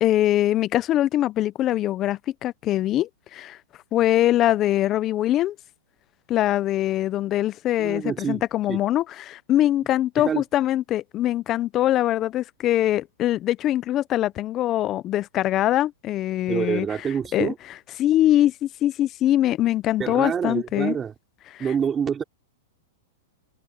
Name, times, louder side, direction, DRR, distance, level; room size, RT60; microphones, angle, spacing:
voice 1, 0.0-3.6 3.9-5.6 6.3-16.9 17.3-17.5 18.0-21.0 21.5-21.6, left 13 dB, 25° left, 0.5 m, -23 dB
voice 2, 7.8-8.8 10.2-10.4 16.5-17.6 20.0-21.1 21.6-22.2, right 7 dB, 15° right, 3.8 m, -27 dB
hypercardioid pair, 150°, 0 cm